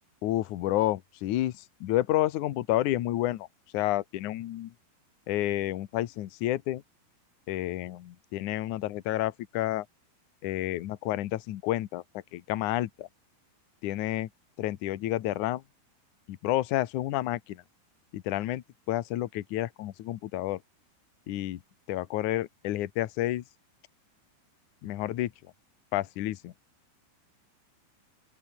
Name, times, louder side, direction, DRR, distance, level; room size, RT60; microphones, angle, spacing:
voice 1, 0.2-3.5 3.7-4.7 5.3-6.8 7.5-9.9 10.4-12.0 12.3-13.1 13.8-14.3 14.6-15.6 16.3-17.6 18.1-20.6 21.3-21.6 21.9-23.4 24.8-25.3 25.9-26.5, left 15 dB, 80° left, 1.7 m, -30 dB
open air
omnidirectional pair, 5.2 m